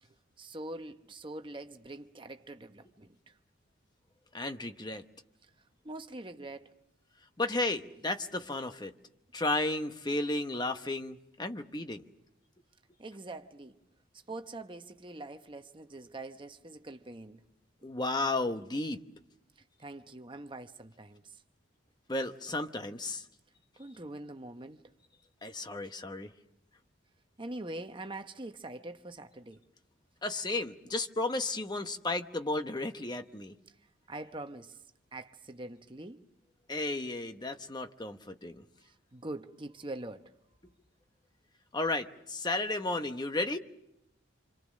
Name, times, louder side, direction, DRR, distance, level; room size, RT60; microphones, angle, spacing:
voice 1, 0.4-3.3 5.8-6.7 13.0-13.8 14.3-17.4 19.8-21.2 23.8-24.8 27.4-29.6 34.1-34.8 35.1-36.2 39.1-40.3, right 2 dB, 25° right, 1.0 m, -43 dB
voice 2, 4.3-5.0 7.4-8.9 9.3-12.0 17.8-19.0 22.1-23.3 25.4-26.3 30.2-33.6 36.7-38.6 41.7-43.6, left 2 dB, 20° left, 1.0 m, -33 dB
27.0 x 26.5 x 6.4 m
head